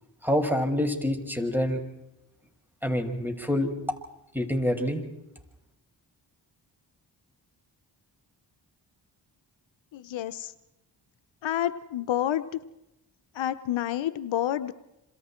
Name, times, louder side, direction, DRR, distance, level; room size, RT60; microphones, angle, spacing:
voice 1, 0.2-1.8 2.8-3.7 4.3-5.0, left 1 dB, 5° right, 4 dB, 6.2 m, -26 dB
voice 2, 9.9-10.5 11.4-12.4 13.3-14.7, left 12 dB, 80° left, 12 dB, 0.9 m, -29 dB
27.5 x 27.0 x 4.5 m, 0.90 s
supercardioid pair, 40°, 45 cm